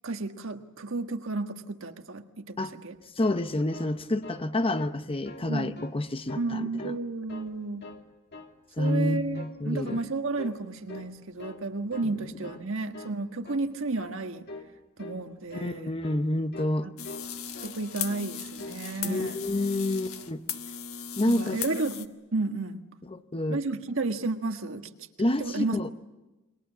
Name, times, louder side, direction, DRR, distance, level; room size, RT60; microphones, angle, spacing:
voice 1, 0.0-3.0 5.5-5.8 6.3-7.8 8.8-14.4 15.0-15.9 16.8-16.9 17.6-19.4 21.3-22.8 23.5-24.9 25.4-25.8, right 3 dB, 65° right, 1.6 m, -32 dB
sound 1, 3.0-4.5 4.7-5.0 5.2-5.9 6.3-7.0 7.3-8.0 8.3-8.6 8.8-9.6 9.9-10.1 10.4-10.6 10.9-11.6 11.9-12.1 12.4-12.7 12.9-13.2 13.4-13.7 14.0-14.2 14.5-14.7 15.0-15.2 15.5-15.7 16.0-16.3 16.5-16.8 17.0-17.8 18.1-18.3 18.6-18.8 19.1-19.3, left 2 dB, 55° left, 2.0 m, -44 dB
voice 2, 3.2-6.9 8.8-10.0 15.5-16.9 19.0-20.4 21.2-21.6 23.1-23.6 25.2-25.9, left 1 dB, 25° left, 0.8 m, -28 dB
sound 2, 17.0-22.1, left 8 dB, 80° left, 1.4 m, -37 dB
28.5 x 22.5 x 7.3 m
head